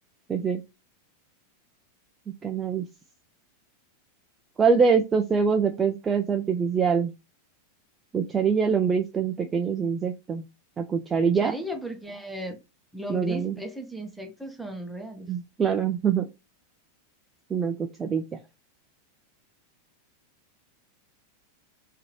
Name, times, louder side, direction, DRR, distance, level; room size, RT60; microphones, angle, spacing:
voice 1, 0.3-0.6 2.4-2.9 4.6-7.1 8.1-10.4 10.8-11.5 13.1-13.6 15.3-16.3 17.5-18.2, right 6 dB, 20° right, 0.4 m, -24 dB
voice 2, 11.4-12.6 12.9-15.3, equal, ahead, 0.8 m, -36 dB
3.7 x 2.7 x 3.1 m
figure-of-eight pair, 90°, 0 cm